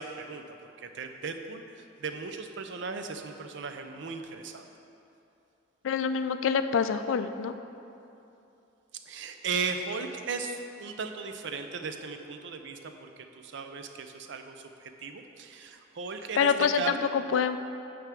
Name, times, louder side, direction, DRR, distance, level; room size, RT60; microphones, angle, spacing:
voice 1, 0.0-4.7 9.1-16.5 16.8-16.9, right 5 dB, 65° right, 6 dB, 0.5 m, -37 dB
voice 2, 5.8-7.5 16.4-17.6, left 6 dB, 75° left, 10 dB, 0.4 m, -26 dB
9.1 x 3.4 x 6.1 m, 2.8 s
head